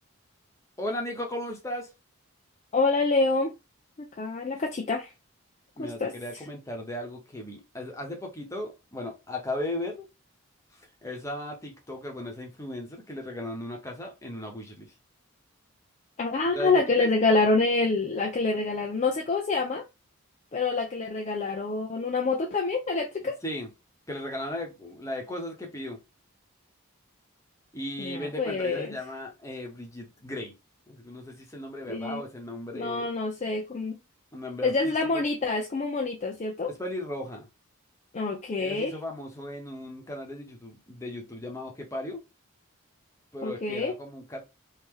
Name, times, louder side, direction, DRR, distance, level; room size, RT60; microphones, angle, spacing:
voice 1, 0.8-1.9 5.8-10.1 10.7-14.9 16.5-17.1 23.4-23.7 24.1-26.0 27.7-30.5 30.9-33.1 34.3-35.2 36.7-37.5 38.6-42.2 43.3-44.5, left 1 dB, 15° left, 0.9 m, -36 dB
voice 2, 2.7-3.5 4.0-5.1 5.8-6.1 16.2-19.9 20.5-23.4 28.0-28.9 31.9-32.2 32.7-34.0 34.6-36.7 38.1-38.9 43.4-43.9, left 3 dB, 30° left, 0.4 m, -26 dB
3.1 x 2.7 x 3.6 m
head